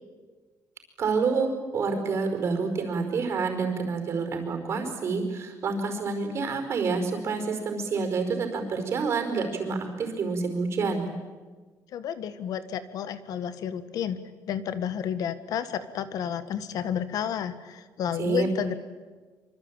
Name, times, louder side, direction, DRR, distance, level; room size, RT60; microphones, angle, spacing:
voice 1, 1.0-11.1 18.2-18.5, right 4 dB, 40° right, 6 dB, 4.9 m, -28 dB
voice 2, 11.9-14.2 14.5-18.7, left 9 dB, 65° left, 12 dB, 1.5 m, -31 dB
25.5 x 25.5 x 9.0 m, 1.4 s
cardioid pair, 180°, 7 cm